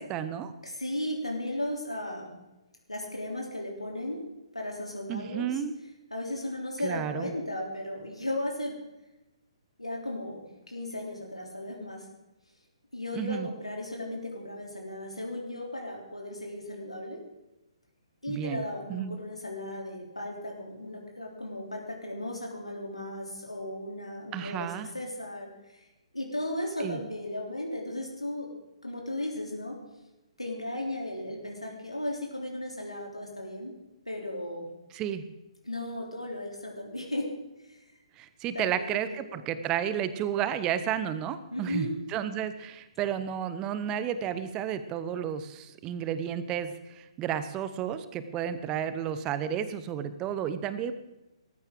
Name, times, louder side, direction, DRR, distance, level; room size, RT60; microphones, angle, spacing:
voice 1, 0.0-0.5 5.1-5.7 6.8-7.3 13.1-13.5 18.3-18.6 18.9-19.2 24.3-24.9 26.8-27.0 34.9-35.2 38.2-50.9, right 9 dB, 20° right, 13 dB, 0.9 m, -32 dB
voice 2, 0.6-2.3 2.9-4.2 4.5-5.5 6.1-8.8 9.8-12.1 12.9-17.2 18.2-25.8 26.1-28.5 28.8-29.8 30.4-33.7 34.1-34.7 35.6-37.3 37.7-37.8 38.5-39.0 39.3-39.4 41.5-41.9, left 1 dB, 85° left, -1 dB, 3.3 m, -36 dB
18.0 x 14.5 x 3.8 m, 0.97 s
figure-of-eight pair, 130°, 3 cm